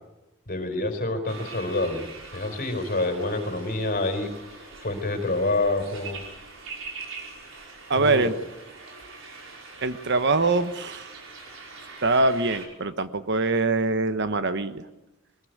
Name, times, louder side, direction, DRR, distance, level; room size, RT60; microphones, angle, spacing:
voice 1, 0.5-6.2 7.9-8.3, left 2 dB, 45° left, 6 dB, 4.3 m, -27 dB
sound 1, 1.3-12.7, right 4 dB, 75° right, 5.5 m, -43 dB
voice 2, 7.9-8.3 9.8-11.1 12.0-14.8, right 3 dB, 60° right, 11 dB, 1.2 m, -23 dB
23.0 x 20.0 x 9.4 m, 0.99 s
head